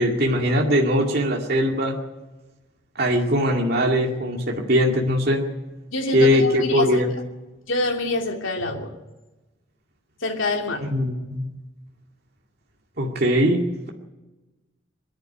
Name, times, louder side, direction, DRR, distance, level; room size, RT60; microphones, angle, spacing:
voice 1, 0.0-1.9 3.0-5.4 6.1-7.1 10.9-11.5 13.0-13.9, equal, 55° right, 0 dB, 2.3 m, -21 dB
voice 2, 5.9-7.0 7.7-9.0 10.2-10.9, left 2 dB, 85° left, 2 dB, 2.9 m, -26 dB
23.5 x 11.0 x 10.0 m, 1.1 s
head